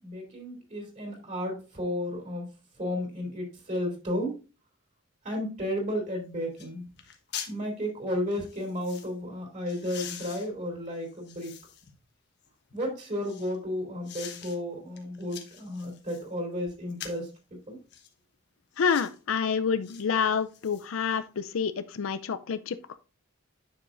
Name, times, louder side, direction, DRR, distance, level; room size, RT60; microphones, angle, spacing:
voice 1, 0.0-2.5 2.8-4.3 5.2-6.8 7.5-11.5 12.7-17.3 17.7-17.8, left 1 dB, 40° right, 3.2 m, -33 dB
sound 1, 6.1-6.2 6.6-6.7 7.0-7.6 8.3-9.1 9.7-11.9 12.4-13.6 14.0-14.6 15.0-16.3 16.9-17.3 17.9-18.1 18.7-19.2 19.8-20.0 20.4-21.2 21.6-21.7, left 9 dB, 55° left, 1.2 m, -44 dB
voice 2, 18.8-22.8, left 6 dB, 85° left, 0.5 m, -28 dB
10.0 x 7.0 x 2.5 m
head